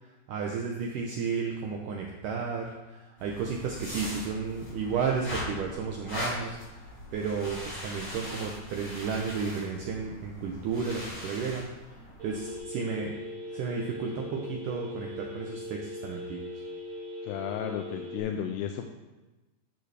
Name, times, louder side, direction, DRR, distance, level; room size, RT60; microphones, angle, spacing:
voice 1, 0.0-6.6 7.1-12.0 12.2-13.1 13.5-16.4, right 5 dB, 80° right, 0 dB, 1.8 m, -33 dB
sound 1, 3.2-12.6, left 1 dB, 25° left, 2.8 m, -40 dB
Telephone, 12.2-18.2, left 2 dB, 40° right, 2.6 m, -40 dB
voice 2, 17.2-18.9, left 9 dB, 90° left, 4 dB, 2.6 m, -33 dB
11.5 x 6.6 x 3.4 m, 1.1 s
omnidirectional pair, 4.6 m